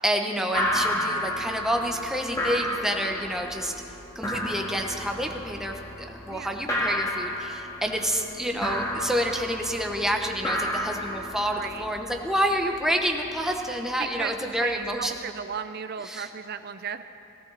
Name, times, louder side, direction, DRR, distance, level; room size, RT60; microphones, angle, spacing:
voice 1, 0.0-3.7 4.1-5.8 6.1-15.2 16.0-16.3, equal, ahead, 2 dB, 1.1 m, -28 dB
sound 1, 0.5-15.1, equal, 15° left, 2.0 m, -32 dB
voice 2, 6.3-6.6 9.3-9.4 11.4-11.9 13.5-13.6 14.0-17.0, right 7 dB, 50° right, 11 dB, 0.5 m, -35 dB
19.0 x 17.0 x 4.1 m, 2.6 s
head